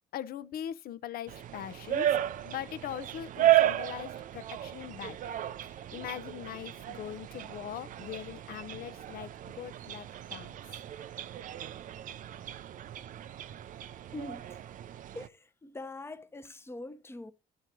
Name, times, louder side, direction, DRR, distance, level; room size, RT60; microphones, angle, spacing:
voice 1, 0.1-2.2 2.4-5.3 5.6-9.3 9.6-10.9, left 11 dB, 60° left, 0.7 m, -41 dB
sound 1, 1.3-15.3, right 13 dB, 50° right, 0.5 m, -33 dB
voice 2, 14.1-14.6 15.1-17.3, left 2 dB, 15° left, 0.8 m, -43 dB
10.5 x 3.9 x 6.0 m
cardioid pair, 110°, 17 cm